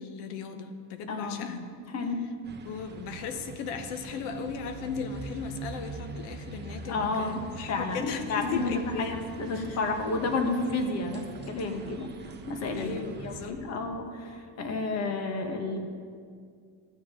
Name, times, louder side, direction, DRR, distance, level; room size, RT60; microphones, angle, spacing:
voice 1, 0.0-1.6 2.6-9.2 9.5-9.8 12.8-13.7, left 6 dB, 90° left, 7 dB, 1.1 m, -37 dB
voice 2, 1.1-1.5 1.9-2.2 6.9-7.4 7.7-12.1 12.5-12.9 13.2-15.8, left 3 dB, 40° left, 4 dB, 1.4 m, -31 dB
sound 1, 2.4-13.5, right 3 dB, 25° right, 0.9 m, -43 dB
14.5 x 7.1 x 3.8 m, 2.1 s
cardioid pair, 135°, 40 cm